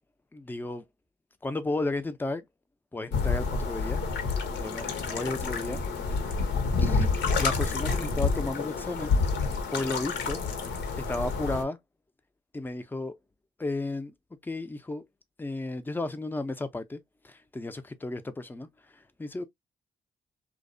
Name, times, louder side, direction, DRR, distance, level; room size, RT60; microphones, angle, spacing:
voice 1, 0.3-0.8 1.4-2.4 2.9-4.0 4.5-5.8 6.1-6.5 6.8-7.1 7.3-9.2 9.7-10.4 11.1-11.8 12.5-13.2 13.6-14.1 14.4-15.0 15.4-18.7 18.9-19.4, left 2 dB, 10° left, 0.4 m, -33 dB
sound 1, 3.1-11.6, left 4 dB, 80° left, 0.7 m, -28 dB
2.5 x 2.0 x 2.4 m
supercardioid pair, 55°, 18 cm